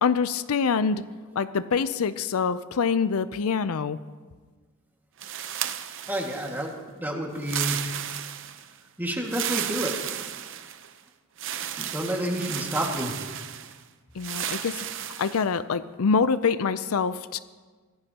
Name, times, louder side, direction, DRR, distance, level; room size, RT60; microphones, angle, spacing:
voice 1, 0.0-1.0 1.4-4.0 14.2-17.4, left 5 dB, 75° left, 14 dB, 0.5 m, -25 dB
sound 1, 5.2-6.7 7.4-8.7 9.2-10.9 11.4-13.8 14.2-15.5, right 10 dB, 60° right, 0.7 m, -33 dB
voice 2, 6.1-8.0 9.0-10.0 11.8-13.1, equal, 10° right, 0 dB, 1.9 m, -29 dB
24.5 x 16.0 x 2.9 m, 1.4 s
head